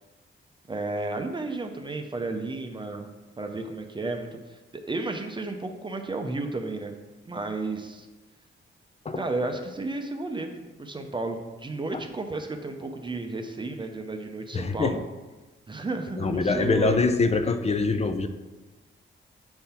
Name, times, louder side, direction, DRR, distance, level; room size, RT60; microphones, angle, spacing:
voice 1, 0.7-6.9 7.3-8.1 9.2-10.5 10.8-15.0 15.7-17.0, right 2 dB, 20° right, 5 dB, 0.5 m, -32 dB
voice 2, 14.5-15.0 16.2-18.3, left 3 dB, 30° left, 8 dB, 0.4 m, -24 dB
7.8 x 3.8 x 4.3 m, 1.2 s
wide cardioid pair, 125°, 21 cm